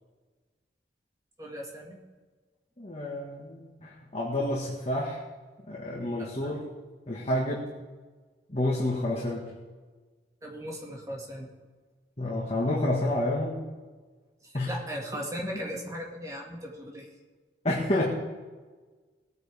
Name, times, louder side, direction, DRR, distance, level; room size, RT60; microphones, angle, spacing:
voice 1, 1.4-2.0 6.2-6.6 10.4-11.5 14.4-17.1, equal, 20° right, -1 dB, 2.3 m, -38 dB
voice 2, 2.8-5.2 5.7-6.6 7.1-7.7 8.5-9.5 12.2-13.6 14.5-14.7 17.6-18.0, left 1 dB, 35° left, -3 dB, 1.8 m, -29 dB
19.5 x 9.2 x 3.7 m, 1.3 s
head